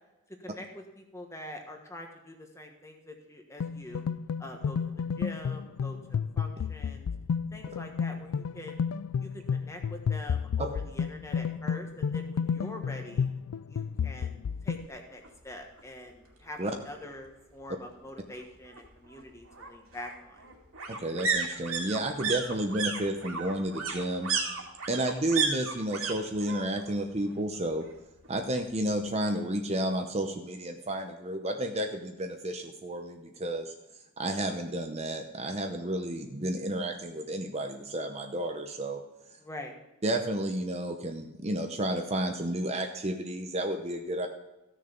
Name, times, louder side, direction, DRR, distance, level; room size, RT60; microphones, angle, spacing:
voice 1, 0.4-4.0 4.4-4.8 5.1-7.1 7.5-8.8 9.2-13.3 13.7-20.4 39.4-39.7, left 1 dB, 15° left, 3 dB, 1.4 m, -45 dB
sound 1, 3.6-14.9, left 6 dB, 85° left, 0.4 m, -32 dB
sound 2, 15.2-15.3 15.7-15.8 16.1-17.1 18.4-26.1 26.4-27.0 27.2-28.3 28.6-28.7, right 5 dB, 70° right, 2.4 m, -34 dB
voice 2, 20.9-24.3 24.9-27.8 28.3-33.7 34.2-39.0 40.0-44.3, right 1 dB, 30° right, 5 dB, 0.7 m, -31 dB
15.5 x 6.7 x 5.2 m, 1.0 s
head